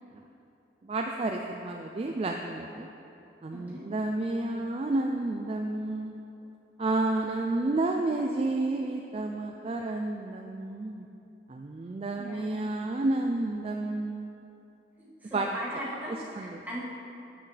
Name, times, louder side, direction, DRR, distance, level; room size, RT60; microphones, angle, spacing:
voice 1, 0.8-2.9 3.4-6.2 6.8-11.1 11.5-14.3 15.3-15.6 16.1-16.6, right 2 dB, 35° right, 2 dB, 0.3 m, -31 dB
voice 2, 3.5-3.8 12.1-12.6 15.0-16.8, equal, 10° right, -9 dB, 1.9 m, -39 dB
9.5 x 8.0 x 3.3 m, 2.8 s
head